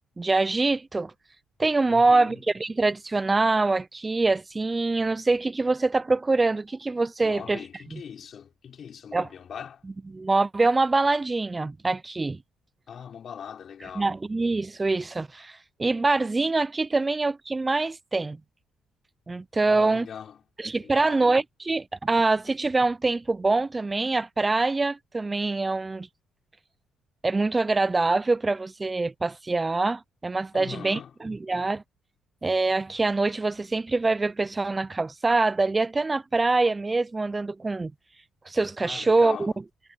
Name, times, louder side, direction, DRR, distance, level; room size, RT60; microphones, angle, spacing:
voice 1, 0.2-1.1 1.6-7.6 7.9-8.0 9.1-9.3 10.1-12.4 14.0-18.4 19.3-20.1 20.6-26.1 27.2-31.8 32.4-37.9 38.5-39.5, right 3 dB, 20° right, 0.4 m, -24 dB
voice 2, 1.9-2.4 7.2-9.8 12.9-14.1 19.6-20.4 20.8-21.3 30.5-31.1 38.8-39.5, left 8 dB, 55° left, 4.8 m, -41 dB
cardioid pair, 90°, 0 cm